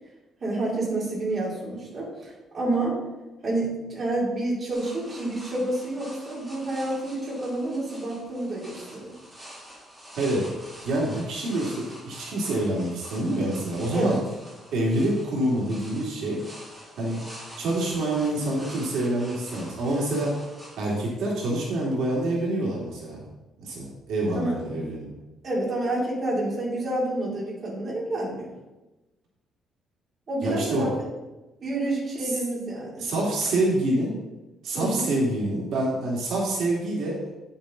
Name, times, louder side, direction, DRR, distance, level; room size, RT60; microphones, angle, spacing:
voice 1, 0.4-3.0 3.4-9.1 13.9-14.2 24.3-24.5 25.4-28.5 30.3-31.1 31.6-33.1 34.7-35.1, right 2 dB, 30° right, -5 dB, 2.9 m, -29 dB
sound 1, 4.7-20.8, equal, 10° right, 2.1 m, -46 dB
voice 2, 10.2-10.5 10.8-14.2 14.7-16.4 17.0-17.2 17.6-20.4 20.8-23.2 23.6-25.1 30.4-30.9 32.2-32.4 33.0-34.2 34.6-37.2, right 1 dB, 70° right, -4 dB, 2.3 m, -26 dB
9.3 x 7.1 x 3.8 m, 1.1 s
cardioid pair, 175°, 0 cm